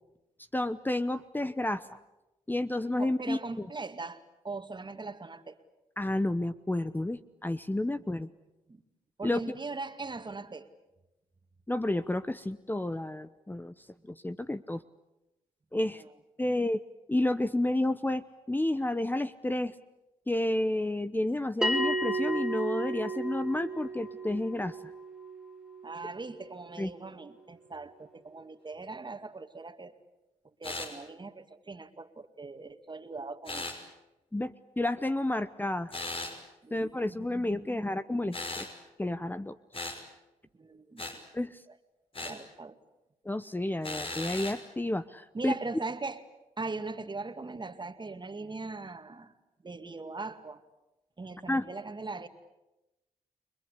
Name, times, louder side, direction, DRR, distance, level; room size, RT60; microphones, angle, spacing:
voice 1, 0.5-1.9 2.5-3.4 6.0-8.3 9.2-9.4 11.7-13.7 14.1-14.8 15.7-16.0 16.4-16.8 17.1-19.7 20.3-24.8 26.8-26.9 34.3-35.9 36.7-38.7 39.0-39.6 39.8-40.0 41.3-41.6 43.2-45.5 51.5-51.6, left 1 dB, 15° left, 13 dB, 0.9 m, -30 dB
voice 2, 3.0-5.6 8.0-8.1 8.7-8.8 9.2-10.7 14.4-14.5 16.0-16.1 16.5-16.6 25.8-29.9 30.6-33.7 36.6-38.2 40.5-41.2 41.7-41.8 42.2-42.8 45.3-46.2 46.6-49.3 49.6-50.6 51.2-52.3, right 3 dB, 35° right, 8 dB, 2.3 m, -40 dB
Bell, 21.6-26.7, right 2 dB, 5° right, 2.3 m, -34 dB
sound 1, 30.6-30.9 33.4-33.8 35.9-36.4 38.3-38.7 39.7-40.0 41.0-41.2 42.1-42.4 43.8-44.6, left 2 dB, 40° left, 5.8 m, -37 dB
30.0 x 21.5 x 8.4 m, 0.96 s
supercardioid pair, 55°, 14 cm